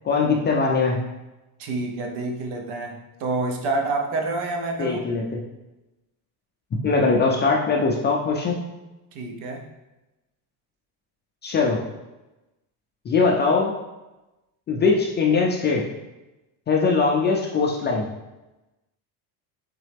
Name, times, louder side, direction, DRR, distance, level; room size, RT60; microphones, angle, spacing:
voice 1, 0.0-1.0 4.8-5.4 6.8-8.6 11.4-11.8 13.1-13.7 14.7-15.9 16.7-18.1, left 4 dB, 25° left, 0 dB, 0.4 m, -21 dB
voice 2, 1.6-5.0 9.1-9.7, right 3 dB, 65° right, 2 dB, 0.9 m, -28 dB
4.0 x 3.7 x 3.4 m, 1.0 s
cardioid pair, 130°, 44 cm